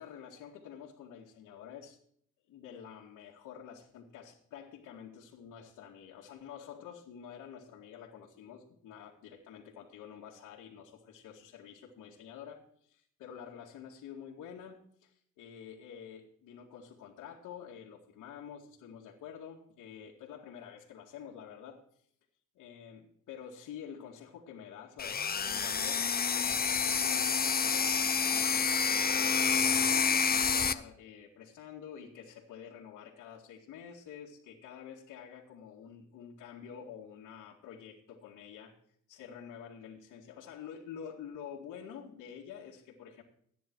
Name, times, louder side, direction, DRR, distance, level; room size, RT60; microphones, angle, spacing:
voice 1, 0.0-2.0 2.5-21.8 22.5-38.7 39.1-43.2, left 8 dB, 90° left, -4 dB, 2.3 m, -48 dB
sound 1, 25.0-30.7, left 6 dB, 30° left, 0.9 m, -28 dB
15.0 x 10.0 x 4.7 m, 0.65 s
cardioid pair, 90°, 30 cm